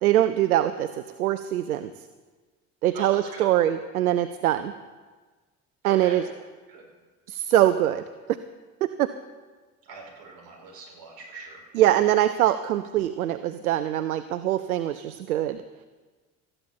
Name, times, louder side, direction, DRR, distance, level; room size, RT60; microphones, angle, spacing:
voice 1, 0.0-1.9 2.8-4.7 5.8-6.2 7.3-8.0 8.8-9.1 11.7-15.6, right 13 dB, 75° right, 12 dB, 0.6 m, -23 dB
voice 2, 2.9-3.5 5.8-6.3 6.7-6.9 9.8-11.7, right 3 dB, 55° right, -1 dB, 5.9 m, -42 dB
18.5 x 14.0 x 4.4 m, 1.3 s
figure-of-eight pair, 60°, 44 cm